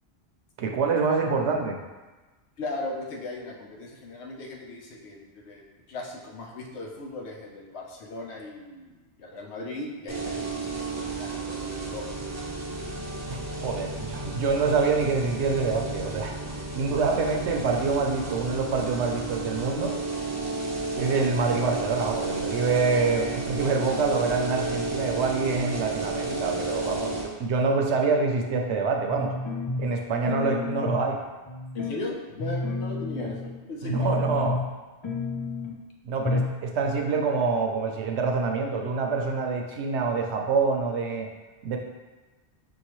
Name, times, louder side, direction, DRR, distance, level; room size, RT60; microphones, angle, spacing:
voice 1, 0.6-1.8 13.3-16.4 16.7-20.0 20.9-29.3 29.8-31.2 33.8-34.6 36.0-41.3 41.6-41.8, right 4 dB, 80° right, 2 dB, 0.9 m, -26 dB
voice 2, 2.6-12.0 31.7-34.1, left 2 dB, 75° left, 0 dB, 1.0 m, -37 dB
sound 1, 10.1-27.2, right 3 dB, 20° right, 0.5 m, -32 dB
sound 2, 29.1-29.9 30.3-31.1 31.5-32.0 32.4-33.6 33.9-34.8 35.0-35.8 36.2-36.6 36.8-36.9, left 2 dB, 40° left, 0.4 m, -30 dB
6.0 x 2.8 x 3.0 m, 1.2 s
omnidirectional pair, 1.1 m